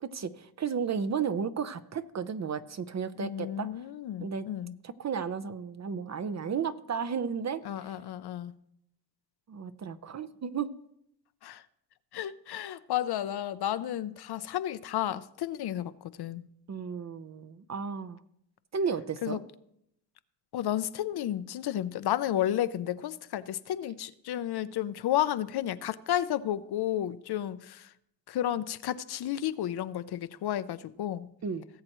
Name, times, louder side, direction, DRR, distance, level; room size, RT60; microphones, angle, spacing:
voice 1, 0.0-3.7 4.2-4.4 5.0-7.6 9.5-10.7 16.7-18.2 18.7-19.4 31.4-31.7, right 6 dB, 40° right, 0.7 m, -33 dB
voice 2, 3.2-4.7 7.6-8.5 11.4-11.6 12.1-16.4 19.2-19.4 20.5-27.9 28.3-31.3, left 12 dB, 60° left, 0.6 m, -32 dB
18.5 x 7.6 x 3.1 m
supercardioid pair, 70°, 44 cm